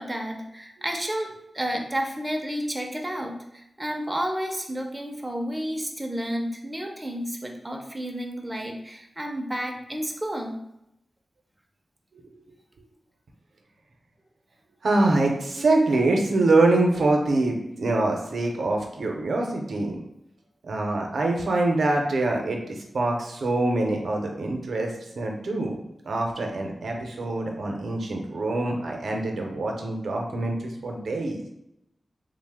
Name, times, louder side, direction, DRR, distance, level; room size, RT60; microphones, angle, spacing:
voice 1, 0.0-10.5, equal, 15° right, 1 dB, 0.4 m, -31 dB
voice 2, 14.8-20.0 20.6-25.8 26.0-31.4, right 2 dB, 85° right, 1 dB, 0.5 m, -24 dB
3.0 x 2.0 x 3.4 m, 0.82 s
wide cardioid pair, 110°, 0 cm